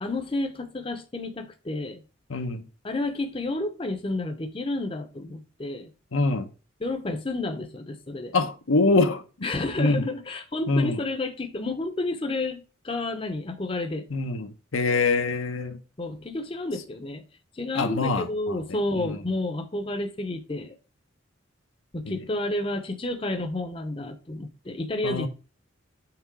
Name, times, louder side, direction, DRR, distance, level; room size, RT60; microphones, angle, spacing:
voice 1, 0.0-2.0 2.8-5.9 6.8-8.3 9.4-14.1 16.0-17.2 17.5-20.8 21.9-25.3, left 2 dB, 25° left, 0.6 m, -30 dB
voice 2, 2.3-2.6 6.1-6.5 8.3-9.2 9.8-10.1 10.7-11.0 14.1-15.8 17.7-18.6 19.0-19.2 22.0-22.1 25.0-25.3, left 3 dB, 90° left, 0.8 m, -24 dB
5.9 x 3.7 x 4.5 m
head